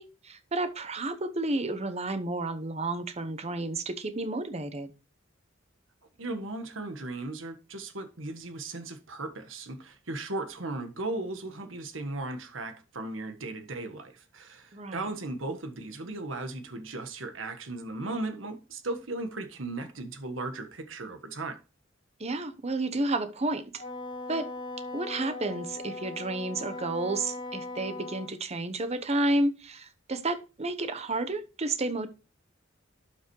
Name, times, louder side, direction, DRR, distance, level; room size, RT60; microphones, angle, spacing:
voice 1, 0.0-4.9 14.7-15.1 22.2-23.6 24.3-24.5 24.9-32.1, right 2 dB, 35° right, 0.9 m, -31 dB
voice 2, 6.2-21.6, right 2 dB, 85° right, 1.5 m, -36 dB
Wind instrument woodwind instrument, 23.8-28.3, left 2 dB, 25° left, 2.2 m, -39 dB
11.5 x 5.9 x 3.1 m
head